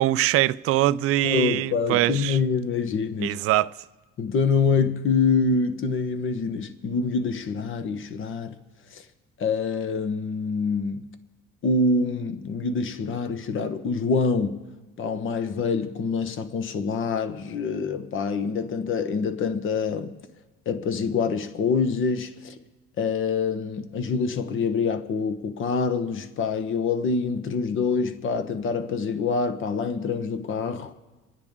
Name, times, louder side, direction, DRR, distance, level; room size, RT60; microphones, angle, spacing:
voice 1, 0.0-2.4 3.2-3.7, right 15 dB, 50° right, 0.4 m, -22 dB
voice 2, 1.2-3.4 4.2-8.5 8.9-9.0 9.4-11.0 11.6-14.6 15.0-20.1 20.7-22.5 23.0-30.9, left 4 dB, 45° left, 1.1 m, -26 dB
27.5 x 9.8 x 3.7 m
cardioid pair, 115°, 29 cm